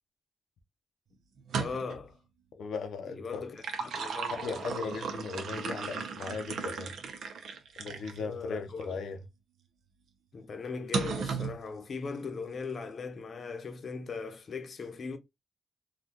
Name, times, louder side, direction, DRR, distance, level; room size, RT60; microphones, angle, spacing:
sound 1, 1.4-2.1 3.3-8.2 8.8-8.9 10.9-11.6, right 5 dB, 80° right, 0.7 m, -36 dB
voice 1, 1.6-2.2 3.1-4.7 8.2-9.0 10.3-15.2, left 4 dB, 50° left, 0.7 m, -39 dB
voice 2, 2.5-3.5 4.4-6.9 7.8-9.2, left 4 dB, 85° left, 0.7 m, -37 dB
3.8 x 2.4 x 2.8 m
cardioid pair, 105°, 0 cm